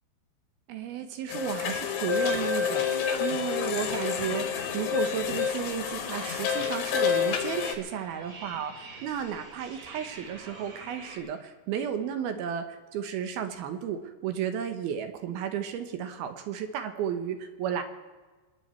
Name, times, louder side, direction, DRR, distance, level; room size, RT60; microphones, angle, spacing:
voice 1, 0.7-17.8, right 8 dB, 75° right, 7 dB, 2.8 m, -33 dB
sound 1, 1.3-7.7, left 8 dB, 85° left, 3.4 m, -29 dB
sound 2, 3.7-11.2, right 3 dB, 50° right, 4.0 m, -47 dB
27.5 x 9.6 x 4.5 m, 1.3 s
omnidirectional pair, 4.6 m